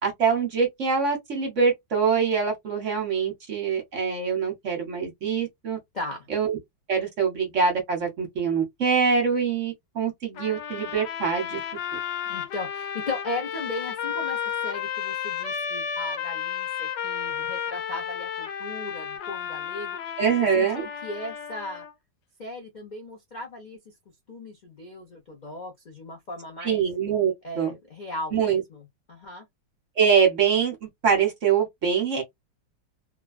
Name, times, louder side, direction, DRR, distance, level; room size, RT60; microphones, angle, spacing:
voice 1, 0.0-5.8 6.3-6.6 6.9-11.6 20.2-20.8 26.6-27.7 28.3-28.6 30.0-32.2, right 6 dB, 50° right, 1.2 m, -24 dB
voice 2, 5.9-6.3 12.3-20.2 20.5-21.9 22.4-23.9 24.3-26.8 27.4-29.5, left 2 dB, 55° left, 0.5 m, -37 dB
sound 1, 10.4-21.9, left 8 dB, 80° left, 1.4 m, -32 dB
3.1 x 2.2 x 2.3 m
omnidirectional pair, 2.0 m